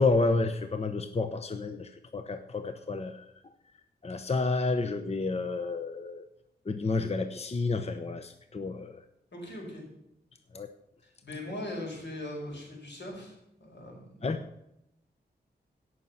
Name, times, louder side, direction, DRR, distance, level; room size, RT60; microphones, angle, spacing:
voice 1, 0.0-3.3 4.0-6.2 6.7-9.0 10.5-10.7 14.2-14.4, left 3 dB, 35° left, 8 dB, 0.8 m, -30 dB
voice 2, 9.3-9.8 11.0-14.3, left 1 dB, 85° left, 0 dB, 5.1 m, -40 dB
16.5 x 6.3 x 5.7 m, 0.83 s
wide cardioid pair, 110°, 18 cm